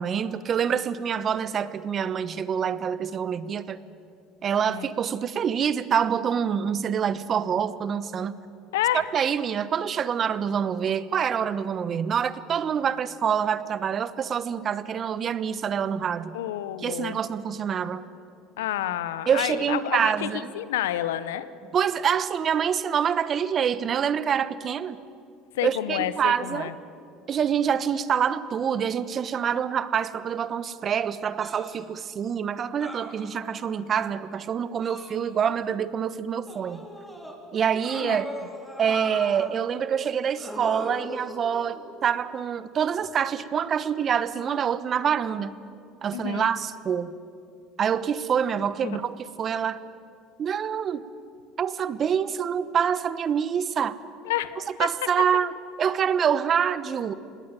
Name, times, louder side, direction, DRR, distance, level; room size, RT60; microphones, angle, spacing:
voice 1, 0.0-3.8 4.4-8.3 8.9-16.3 16.8-18.0 19.3-20.5 21.7-25.0 25.6-26.7 27.3-36.8 37.5-38.3 38.8-45.6 46.0-47.1 47.8-49.8 50.4-51.1 51.6-54.0 54.8-55.5 55.8-57.1, right 8 dB, 40° right, 15 dB, 1.1 m, -26 dB
voice 2, 4.5-4.9 8.7-9.0 16.3-17.2 18.6-21.4 25.6-26.7 38.0-38.2 46.1-46.5 48.8-49.0 54.2-54.7, left 12 dB, 80° left, 15 dB, 1.0 m, -29 dB
sound 1, 31.4-31.8 32.8-33.7 34.8-35.7 36.5-37.3 37.8-39.5 40.4-41.9 43.0-43.2, equal, ahead, 4.9 m, -39 dB
26.0 x 19.0 x 9.2 m, 2.5 s
hypercardioid pair, 75°, 0 cm